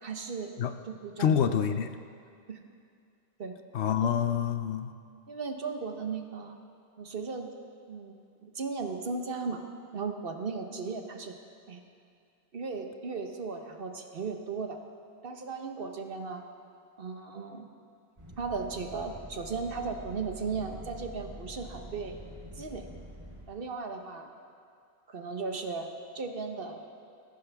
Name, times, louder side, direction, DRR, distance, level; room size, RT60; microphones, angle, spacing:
voice 1, 0.0-0.5 0.9-1.4 2.5-2.6 3.4-3.5 4.0-4.2 5.3-6.6 7.0-7.5 7.9-8.1 8.4-9.6 9.9-11.3 11.7-11.8 12.5-14.8 15.2-16.4 17.0-17.7 18.4-22.2 22.6-22.9 23.5-24.3 25.1-25.9 26.1-26.9, right 4 dB, 55° right, 5 dB, 1.2 m, -36 dB
voice 2, 1.2-1.9 3.7-4.9, left 8 dB, 75° left, 9 dB, 1.0 m, -27 dB
sound 1, 18.2-23.5, equal, 25° right, 3.4 m, -46 dB
19.5 x 15.0 x 3.5 m, 2.4 s
omnidirectional pair, 1.1 m